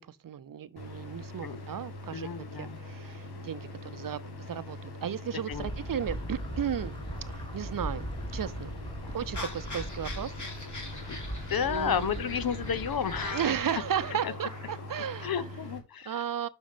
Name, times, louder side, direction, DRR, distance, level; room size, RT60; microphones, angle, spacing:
voice 1, 0.0-7.0 7.3-8.1 8.3-8.7 9.1-10.3 10.8-11.0 11.5-12.6 13.3-15.5 16.1-16.5, right 9 dB, 60° right, 0.6 m, -35 dB
sound 1, 0.8-15.8, left 2 dB, 90° left, 1.9 m, -43 dB
voice 2, 2.1-2.8 5.5-5.7 11.1-11.2 11.5-13.5 14.2-14.3 15.2-16.2, left 8 dB, 65° left, 0.9 m, -32 dB
sound 2, 5.5-14.1, right 1 dB, 15° left, 2.4 m, -40 dB
sound 3, 9.3-15.3, left 2 dB, 50° left, 2.6 m, -43 dB
6.3 x 5.0 x 4.9 m
cardioid pair, 55°, 38 cm